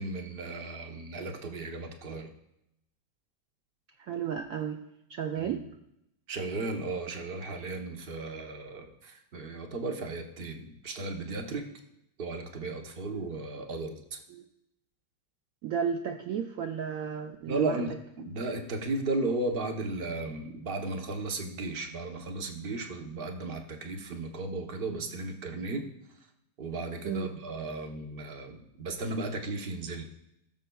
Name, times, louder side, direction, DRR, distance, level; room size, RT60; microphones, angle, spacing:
voice 1, 0.0-2.3 5.3-5.6 6.3-11.6 12.2-14.2 17.5-25.9 26.6-30.0, right 2 dB, 50° right, 4 dB, 0.7 m, -35 dB
voice 2, 4.0-4.8 5.1-5.6 13.1-13.3 14.3-14.4 15.6-17.8 27.0-27.3, right 7 dB, 85° right, 5 dB, 0.7 m, -33 dB
16.0 x 6.7 x 2.3 m, 0.81 s
omnidirectional pair, 2.0 m